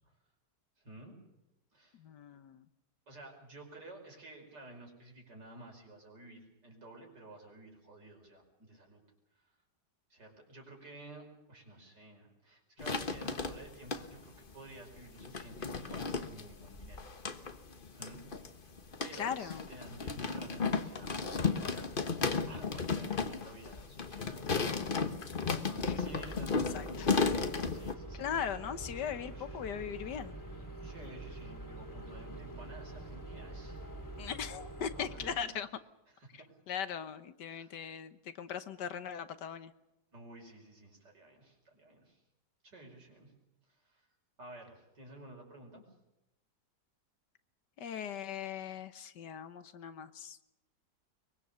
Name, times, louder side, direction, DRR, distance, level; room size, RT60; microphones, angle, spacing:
voice 1, 0.8-1.2 1.7-2.0 3.1-9.0 10.1-17.1 17.9-18.2 19.0-21.2 21.6-21.9 22.5-24.8 25.4-28.3 29.0-29.6 30.8-33.8 34.9-35.5 36.1-36.5 37.5-37.8 40.1-42.2 42.6-43.3 43.8-44.0 44.4-45.8, right 2 dB, 75° right, 1 dB, 5.9 m, -52 dB
voice 2, 2.0-2.6 19.1-19.7 25.8-26.0 26.7-27.1 28.1-30.3 34.2-35.7 36.3-39.7 47.8-50.4, left 8 dB, 75° left, 11 dB, 1.6 m, -39 dB
sound 1, 12.8-14.3 15.0-27.9, left 4 dB, 35° left, 1.2 m, -34 dB
sound 2, 25.8-35.3, right 2 dB, 10° left, 3.1 m, -46 dB
23.5 x 22.5 x 6.9 m, 0.93 s
omnidirectional pair, 1.9 m